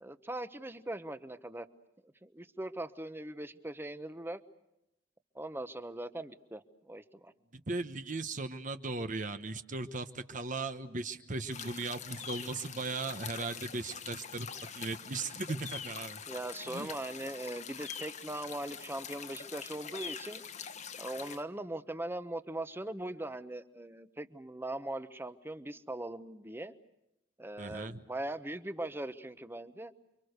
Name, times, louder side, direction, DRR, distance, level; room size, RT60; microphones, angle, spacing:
voice 1, 0.0-1.7 2.2-4.4 5.3-7.3 16.3-20.4 21.0-26.7 27.4-29.9, right 1 dB, 15° right, 11 dB, 1.1 m, -40 dB
voice 2, 7.5-14.5 14.8-16.2 16.6-16.9 27.6-28.0, right 3 dB, 45° right, 8 dB, 1.1 m, -37 dB
sound 1, 11.5-21.4, left 7 dB, 40° left, 1.3 m, -44 dB
29.0 x 24.5 x 6.7 m, 0.88 s
head